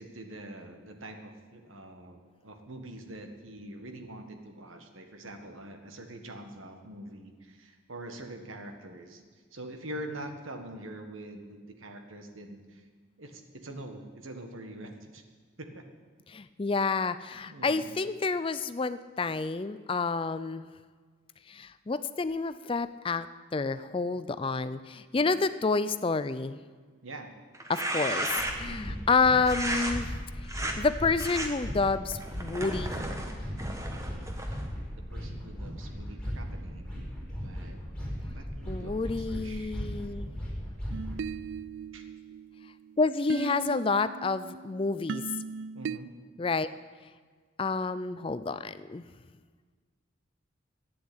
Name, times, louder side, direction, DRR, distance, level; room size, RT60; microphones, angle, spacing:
voice 1, 0.0-12.8 13.2-15.2 15.6-15.8 17.5-17.9 25.2-25.4 27.0-27.3 28.6-29.0 35.1-37.8 38.3-39.8 41.9-42.0 45.7-46.1, right 1 dB, 80° right, 5 dB, 1.6 m, -44 dB
voice 2, 16.3-20.7 21.5-23.3 23.5-26.6 27.7-28.3 28.6-33.1 38.7-40.3 43.0-45.2 46.4-46.7 47.6-49.0, left 4 dB, 25° left, 13 dB, 0.4 m, -29 dB
sound 1, 27.5-28.8 29.5-29.9 30.4-30.7 31.2-31.5 32.1-34.7, right 1 dB, 15° right, 1.2 m, -34 dB
sound 2, 28.4-41.2, equal, 5° left, 5.1 m, -38 dB
sound 3, 40.9-46.0, right 6 dB, 60° right, 0.3 m, -39 dB
12.0 x 9.6 x 8.8 m, 1.5 s
head